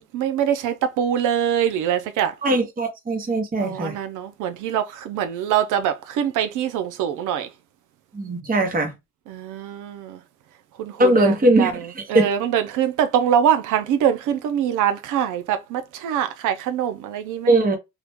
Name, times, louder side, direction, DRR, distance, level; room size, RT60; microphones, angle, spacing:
voice 1, 0.0-2.3 3.6-7.5 9.3-10.2 10.8-17.5, right 9 dB, 85° right, 0.6 m, -24 dB
voice 2, 2.4-3.9 8.1-8.9 11.0-11.7 12.0-12.2 17.5-17.8, right 2 dB, 30° right, 1.0 m, -19 dB
3.1 x 2.4 x 3.4 m
cardioid pair, 90°, 30 cm